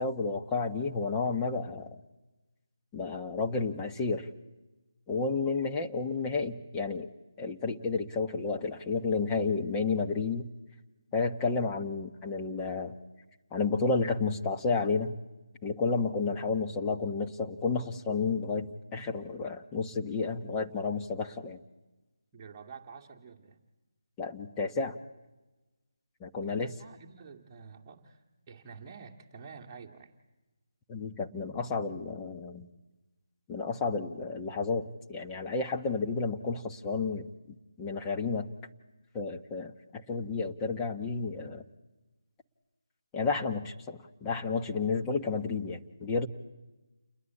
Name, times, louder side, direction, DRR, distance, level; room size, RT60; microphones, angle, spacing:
voice 1, 0.0-1.9 2.9-4.3 5.1-7.1 7.4-10.5 11.1-12.9 13.5-15.1 15.6-21.6 24.2-25.0 26.2-26.7 30.9-32.7 33.5-37.3 37.8-38.5 39.1-41.6 43.1-46.3, left 4 dB, 15° left, 3 dB, 1.2 m, -31 dB
voice 2, 22.3-23.6 26.4-30.1, right 5 dB, 20° right, -1 dB, 2.3 m, -49 dB
29.0 x 21.0 x 8.5 m, 1.1 s
figure-of-eight pair, 155°, 2 cm